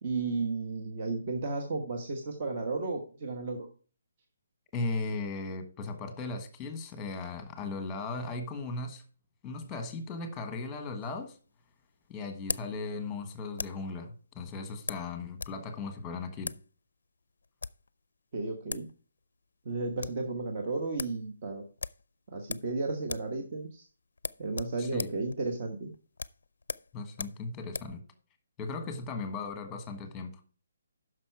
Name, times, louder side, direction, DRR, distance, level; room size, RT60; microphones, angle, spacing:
voice 1, 0.0-3.7 18.3-18.9 19.6-21.7 22.3-23.9 24.4-25.9, right 3 dB, 35° right, 3 dB, 1.2 m, -33 dB
voice 2, 4.7-9.0 9.4-11.4 12.1-16.6 24.8-25.1 26.9-28.0 28.6-30.4, left 3 dB, 10° left, 8 dB, 1.3 m, -37 dB
sound 1, 11.0-13.9 14.9-15.6 15.9-16.0 16.4-16.7 17.4-17.9 18.4-18.5 18.7-18.9 19.2-19.3 19.7-20.3 20.6-20.7 21.0-21.2 21.8-22.8 23.0-23.4 23.6-23.8 24.2-28.0, left 4 dB, 85° left, 0.5 m, -39 dB
9.6 x 6.3 x 4.6 m, 0.39 s
hypercardioid pair, 170°, 0 cm